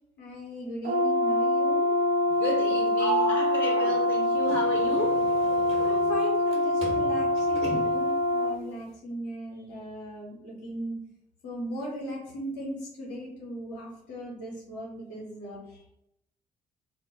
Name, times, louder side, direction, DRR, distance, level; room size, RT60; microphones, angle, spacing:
voice 1, 0.2-1.9 5.8-11.0 11.4-15.9, equal, 70° left, -3 dB, 0.6 m, -38 dB
Brass instrument, 0.8-8.6, left 1 dB, 50° right, 0.6 m, -25 dB
voice 2, 2.3-5.3, equal, 10° left, -1 dB, 0.6 m, -34 dB
Sliding door, 3.0-6.6 6.8-8.1, right 4 dB, 30° right, 1.0 m, -35 dB
2.1 x 2.1 x 3.5 m, 0.81 s
figure-of-eight pair, 40°, 21 cm